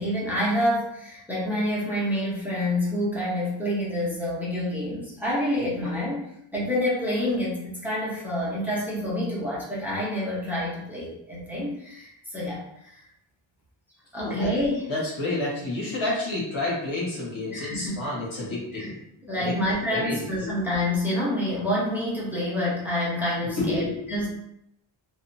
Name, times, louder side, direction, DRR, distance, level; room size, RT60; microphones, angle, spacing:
voice 1, 0.0-13.0 14.1-14.9 17.5-18.1 18.7-18.9 19.3-24.3, left 1 dB, 5° right, -7 dB, 0.9 m, -28 dB
voice 2, 14.2-14.5 14.9-18.9 19.3-19.5 19.9-20.5 23.4-24.1, left 2 dB, 75° left, -5 dB, 1.3 m, -30 dB
2.8 x 2.3 x 2.6 m, 0.77 s
wide cardioid pair, 100°, 49 cm